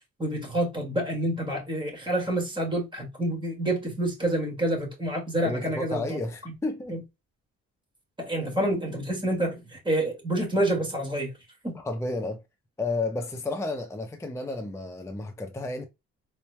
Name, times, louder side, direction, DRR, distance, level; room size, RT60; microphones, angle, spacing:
voice 1, 0.2-6.2 6.9-7.0 8.2-11.3 11.6-11.8, right 1 dB, 15° right, 2.0 m, -28 dB
voice 2, 5.4-7.0 11.7-12.4 12.8-15.9, left 2 dB, 10° left, 0.6 m, -32 dB
4.0 x 3.2 x 2.2 m
cardioid pair, 90°, 30 cm